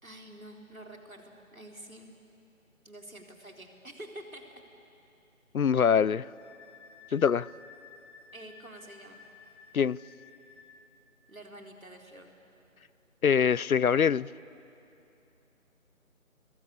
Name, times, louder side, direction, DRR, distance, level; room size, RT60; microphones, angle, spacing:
voice 1, 0.0-2.1 2.8-4.6 8.3-9.2 11.3-12.3, right 1 dB, 80° right, 4.0 m, -48 dB
voice 2, 5.5-6.3 7.1-7.5 9.7-10.0 13.2-14.3, left 7 dB, 90° left, 0.6 m, -24 dB
Wind instrument woodwind instrument, 6.0-10.8, left 5 dB, 50° left, 2.8 m, -54 dB
28.5 x 21.5 x 8.5 m
figure-of-eight pair, 160°, 41 cm